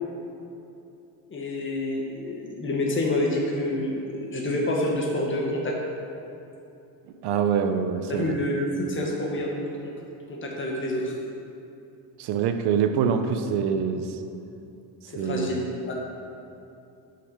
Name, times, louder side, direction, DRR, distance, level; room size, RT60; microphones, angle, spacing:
voice 1, 1.3-5.7 8.1-9.6 9.8-9.9 10.3-11.1 15.1-15.9, left 1 dB, 25° left, -1 dB, 1.6 m, -28 dB
voice 2, 7.2-8.4 12.2-14.2 15.2-15.6, right 7 dB, 65° right, 7 dB, 0.8 m, -25 dB
6.9 x 6.5 x 5.5 m, 2.8 s
cardioid pair, 115°, 43 cm